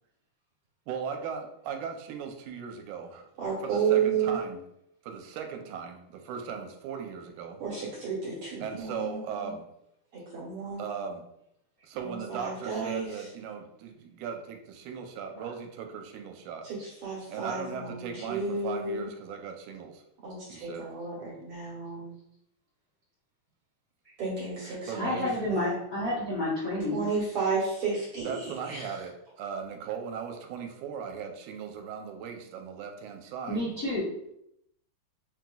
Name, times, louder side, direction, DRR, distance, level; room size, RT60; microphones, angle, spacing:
voice 1, 0.9-3.3 3.6-4.6 5.0-7.6 8.6-9.6 10.8-11.2 11.8-16.7 17.3-20.0 20.5-20.9 24.9-25.4 28.2-33.7, right 7 dB, 85° right, 4 dB, 2.0 m, -38 dB
voice 2, 3.4-4.4 7.6-9.5 10.1-10.8 12.0-13.1 16.6-19.1 20.2-22.1 24.2-25.7 26.9-28.9, right 5 dB, 60° right, -6 dB, 1.8 m, -32 dB
voice 3, 24.6-27.0 33.5-34.0, left 1 dB, 60° left, -10 dB, 0.9 m, -30 dB
5.9 x 2.9 x 2.3 m, 0.77 s
omnidirectional pair, 3.5 m